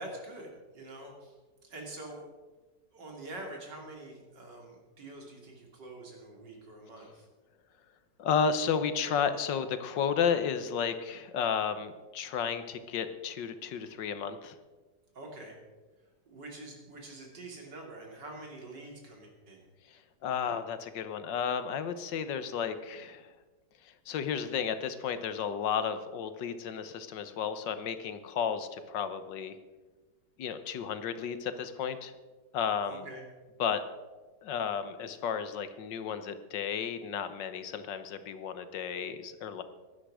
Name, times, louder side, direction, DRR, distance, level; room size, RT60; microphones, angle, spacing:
voice 1, 0.0-1.3 1.6-2.2 2.9-7.3 15.1-15.6 16.3-19.6 32.9-33.2, right 2 dB, 80° right, 0 dB, 3.5 m, -45 dB
voice 2, 8.2-14.5 19.9-23.3 23.8-29.6 30.4-32.1 32.5-33.1 33.6-33.8 34.4-39.6, left 7 dB, 85° left, 11 dB, 1.6 m, -33 dB
16.5 x 11.5 x 4.9 m, 1.3 s
omnidirectional pair, 1.9 m